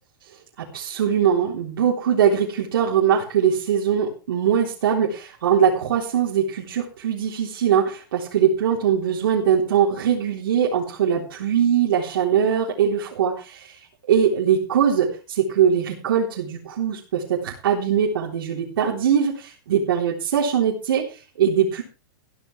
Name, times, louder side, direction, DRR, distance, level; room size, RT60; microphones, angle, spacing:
voice 1, 0.6-13.7 14.1-21.8, right 8 dB, 70° right, -2 dB, 3.7 m, -21 dB
15.0 x 14.0 x 3.4 m, 0.32 s
supercardioid pair, 170°, 12 cm